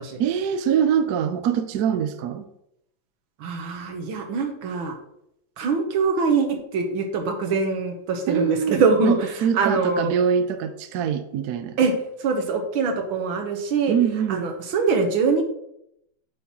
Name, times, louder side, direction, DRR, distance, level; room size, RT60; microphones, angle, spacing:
voice 1, 0.2-2.5 8.3-11.8 13.9-14.5, right 8 dB, 65° right, 1.0 m, -24 dB
voice 2, 3.4-5.0 5.6-9.3 9.5-10.2 11.8-11.9 12.2-14.0 14.3-15.4, right 4 dB, 90° right, 1.9 m, -23 dB
8.4 x 6.3 x 3.0 m
omnidirectional pair, 2.2 m